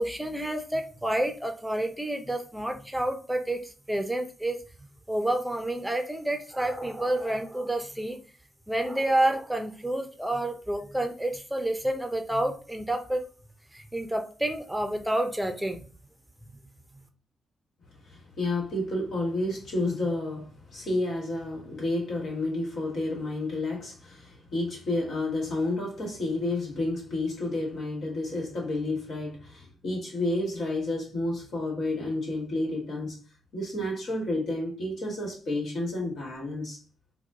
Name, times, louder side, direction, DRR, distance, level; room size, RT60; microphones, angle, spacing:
voice 1, 0.0-4.6 5.1-8.2 8.7-13.2 13.7-15.8, right 1 dB, 10° right, 0.6 m, -29 dB
voice 2, 18.1-33.2 33.5-36.8, left 2 dB, 65° left, 1.6 m, -30 dB
4.1 x 2.2 x 2.6 m
supercardioid pair, 50°, 0 cm